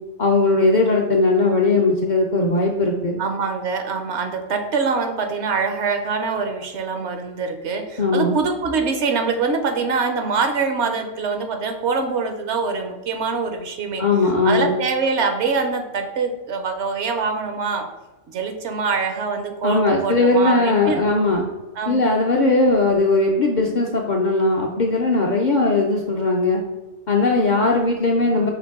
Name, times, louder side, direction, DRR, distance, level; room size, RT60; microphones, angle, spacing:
voice 1, 0.2-3.2 8.0-8.3 14.0-14.7 19.6-21.4 21.9-26.6 27.1-28.5, left 3 dB, 60° left, 0 dB, 0.5 m, -19 dB
voice 2, 3.2-14.0 14.4-17.9 18.3-21.1 21.8-22.1 28.2-28.5, right 4 dB, 70° right, 5 dB, 0.9 m, -24 dB
5.8 x 2.6 x 3.5 m, 1.1 s
omnidirectional pair, 1.2 m